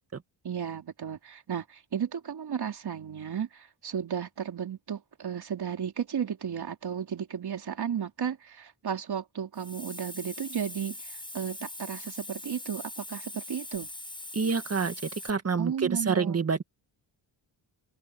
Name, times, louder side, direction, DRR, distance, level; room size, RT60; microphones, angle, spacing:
voice 1, 0.4-13.9 15.6-16.4, right 8 dB, 55° right, 3.8 m, -34 dB
Hiss, 9.5-15.3, left 1 dB, 10° left, 5.5 m, -42 dB
voice 2, 14.3-16.6, right 5 dB, 30° right, 1.8 m, -28 dB
open air
cardioid pair, 90°, 46 cm